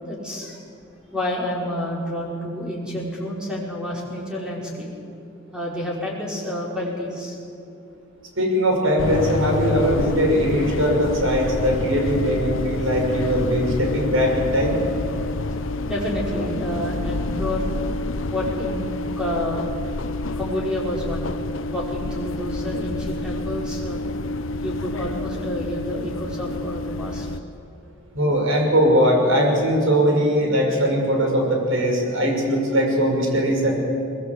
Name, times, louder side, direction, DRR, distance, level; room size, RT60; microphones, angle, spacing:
voice 1, 0.0-0.6 1.1-4.9 5.5-7.4 15.9-17.8 18.3-19.7 20.4-21.3 21.7-24.0 24.6-27.3, left 1 dB, 5° right, -4 dB, 5.3 m, -29 dB
voice 2, 8.4-14.8 28.1-33.8, equal, 85° right, 1 dB, 6.1 m, -20 dB
sound 1, 9.0-27.4, left 2 dB, 80° left, 0.8 m, -28 dB
21.5 x 21.5 x 8.3 m, 2.6 s
head